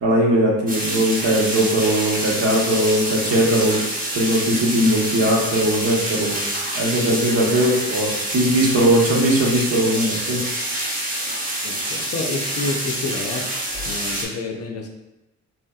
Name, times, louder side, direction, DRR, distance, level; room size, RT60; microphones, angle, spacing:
voice 1, 0.0-3.8 4.1-6.4 6.7-10.4, right 1 dB, 55° right, -2 dB, 1.0 m, -19 dB
sound 1, 0.7-14.2, right 1 dB, 25° right, 1.0 m, -27 dB
voice 2, 11.6-13.5 13.9-14.9, left 3 dB, 55° left, 2 dB, 0.6 m, -29 dB
4.2 x 2.7 x 2.3 m, 0.94 s
cardioid pair, 90°, 30 cm